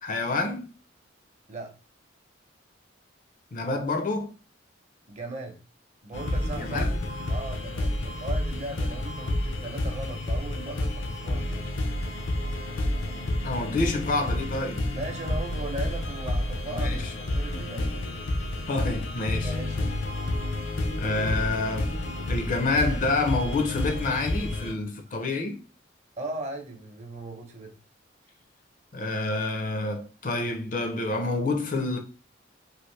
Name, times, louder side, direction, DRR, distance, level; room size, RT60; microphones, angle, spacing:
voice 1, 0.0-0.7 3.5-4.3 6.6-6.9 8.0-8.1 13.4-14.8 16.7-17.0 18.7-19.5 21.0-21.9 22.3-25.6 28.9-32.0, left 3 dB, 45° left, 0.5 m, -28 dB
voice 2, 5.1-5.6 6.0-11.7 14.9-17.9 19.4-20.1 25.1-25.2 26.2-27.8, right 2 dB, 35° right, 0.7 m, -38 dB
sound 1, 6.1-24.7, left 1 dB, 80° left, 0.7 m, -30 dB
3.1 x 2.5 x 3.1 m
head